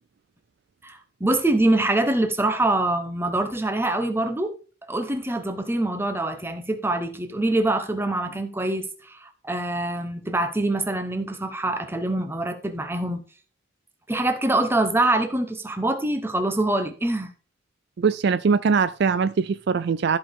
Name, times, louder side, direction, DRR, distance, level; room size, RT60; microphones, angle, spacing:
voice 1, 0.8-13.2 14.1-17.3, right 2 dB, 10° right, 0.9 m, -24 dB
voice 2, 18.0-20.2, right 5 dB, 55° right, 0.4 m, -21 dB
13.5 x 5.1 x 3.6 m
head